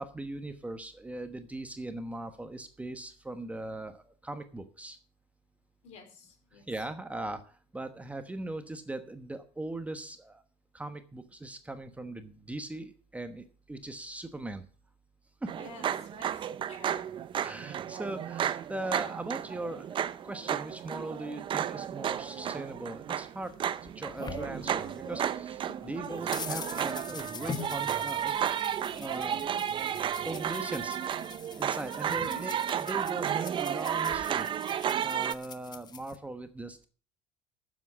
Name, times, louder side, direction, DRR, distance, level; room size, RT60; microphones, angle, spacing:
voice 1, 0.0-5.0 6.5-10.4 10.7-14.6 15.4-15.5 17.4-23.6 23.9-36.9, right 2 dB, 10° right, 8 dB, 1.1 m, -40 dB
voice 2, 5.8-6.7 15.5-17.1 32.2-32.5, left 3 dB, 60° left, 5 dB, 4.2 m, -50 dB
sound 1, 15.5-35.3, right 9 dB, 40° right, 0.7 m, -33 dB
sound 2, 23.4-25.3 25.6-36.2, left 6 dB, 35° left, 1.1 m, -44 dB
9.4 x 7.5 x 7.4 m, 0.41 s
supercardioid pair, 95°, 13 cm